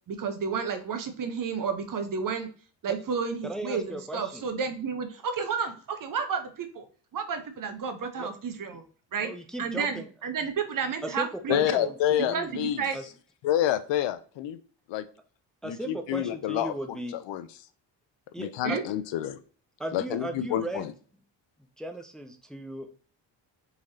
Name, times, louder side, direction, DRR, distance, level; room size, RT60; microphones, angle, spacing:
voice 1, 0.1-2.5 2.8-6.8 7.1-8.8 9.1-9.3 9.6-11.9 12.3-13.0 18.6-18.8, right 6 dB, 45° right, 8 dB, 0.8 m, -31 dB
voice 2, 3.4-4.4 8.2-8.3 9.2-10.1 11.0-12.6 12.9-13.0 15.6-17.2 18.3-18.8 19.8-20.9 21.8-22.9, right 1 dB, ahead, 5 dB, 0.4 m, -36 dB
voice 3, 11.5-12.9 13.4-14.6 14.9-15.0 15.6-16.7 17.1-17.5 18.4-19.4 19.9-20.9, left 11 dB, 70° left, 13 dB, 0.5 m, -28 dB
4.0 x 3.0 x 2.6 m, 0.40 s
cardioid pair, 75°, 46 cm